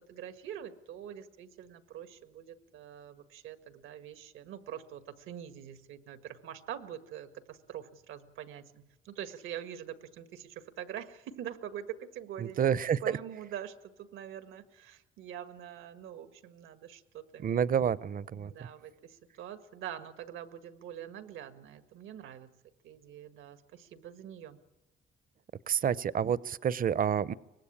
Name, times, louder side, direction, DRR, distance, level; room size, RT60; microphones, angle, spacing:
voice 1, 0.1-12.7 13.0-17.6 18.3-22.5 22.8-24.6, right 10 dB, 90° right, 10 dB, 1.7 m, -44 dB
voice 2, 12.6-13.2 17.4-18.5 25.7-27.3, right 8 dB, 45° right, 18 dB, 0.8 m, -28 dB
24.0 x 19.5 x 8.7 m, 1.0 s
cardioid pair, 90°, 20 cm